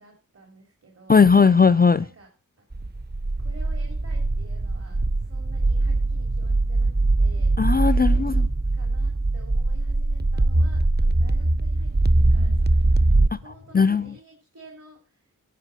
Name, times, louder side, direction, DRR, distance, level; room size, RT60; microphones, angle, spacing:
voice 1, 0.0-1.2 2.0-2.3 2.6-2.7 3.4-7.5 7.9-8.5 8.7-11.9 12.3-15.3, right 1 dB, 45° right, 3.3 m, -50 dB
voice 2, 1.1-2.1 7.6-8.4 13.3-13.4 13.7-14.1, left 5 dB, 30° left, 0.4 m, -17 dB
sound 1, 2.7-13.3, right 2 dB, 30° right, 0.8 m, -22 dB
10.0 x 6.8 x 6.5 m
cardioid pair, 50°, 34 cm